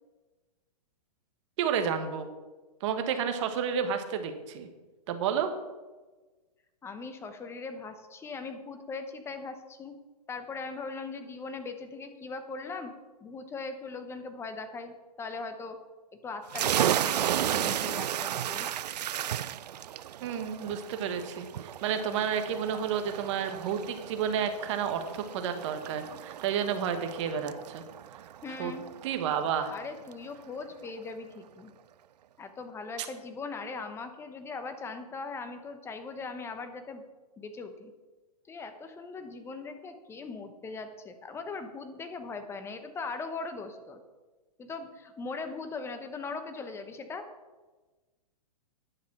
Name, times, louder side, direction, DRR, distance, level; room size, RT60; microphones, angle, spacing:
voice 1, 1.6-2.3 2.8-4.7 5.1-5.5 20.2-27.8 28.6-28.7 29.0-29.7, right 7 dB, 45° right, 7 dB, 1.4 m, -31 dB
voice 2, 6.8-10.0 10.3-12.9 13.2-15.8 16.2-18.7 28.4-28.8 29.7-31.7 32.4-37.0 37.4-37.9 38.5-44.0 44.6-47.3, left 4 dB, 10° left, 8 dB, 0.8 m, -40 dB
sound 1, 16.5-29.9, right 11 dB, 85° right, 0.4 m, -34 dB
10.0 x 7.3 x 6.0 m, 1.2 s
hypercardioid pair, 140°, 20 cm